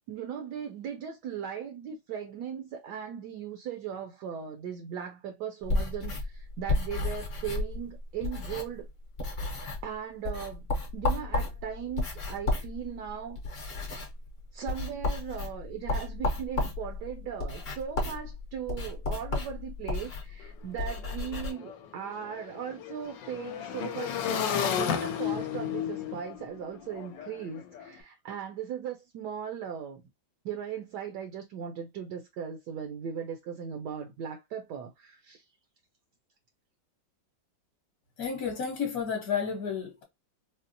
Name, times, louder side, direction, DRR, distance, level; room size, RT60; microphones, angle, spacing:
voice 1, 0.1-8.9 9.3-10.7 10.9-13.4 14.5-30.0 30.4-35.5, right 8 dB, 70° right, 1.1 m, -38 dB
sound 1, 5.6-8.9 9.2-9.9 10.2-21.5, left 2 dB, 40° left, 1.0 m, -33 dB
Motorcycle / Engine, 20.4-20.5 20.8-27.9, left 9 dB, 80° left, 1.3 m, -34 dB
voice 2, 38.2-40.0, left 6 dB, 55° left, 1.3 m, -31 dB
4.1 x 2.0 x 2.6 m
omnidirectional pair, 2.0 m